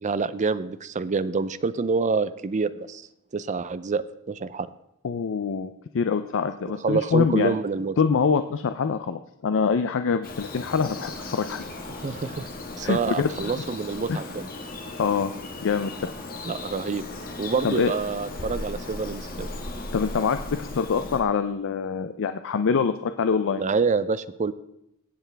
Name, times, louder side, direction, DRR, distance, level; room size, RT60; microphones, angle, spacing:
voice 1, 0.0-3.1 3.3-4.7 6.8-7.9 12.0-12.5 12.8-14.5 16.4-17.0 17.4-19.5 23.6-24.5, right 4 dB, 35° right, 14 dB, 0.5 m, -27 dB
voice 2, 5.0-7.6 8.0-11.6 12.8-13.3 14.1-14.2 15.0-15.3 15.6-16.1 17.6-17.9 19.9-23.6, left 5 dB, 60° left, 9 dB, 0.5 m, -25 dB
Bird vocalization bird call bird song, 10.2-21.2, left 2 dB, 40° left, 1.5 m, -37 dB
18.0 x 8.1 x 3.4 m, 0.81 s
head